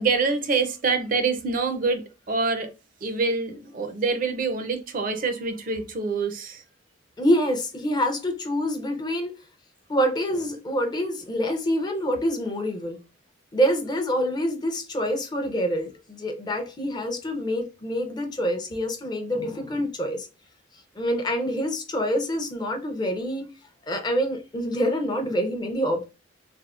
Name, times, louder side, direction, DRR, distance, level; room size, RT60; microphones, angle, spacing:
voice 1, 0.0-2.7 3.0-6.6, right 4 dB, 45° right, 0.5 m, -26 dB
voice 2, 7.2-9.3 9.9-13.0 13.5-20.3 21.0-23.5 23.9-26.0, equal, 20° left, 0.5 m, -26 dB
3.4 x 2.0 x 2.4 m
head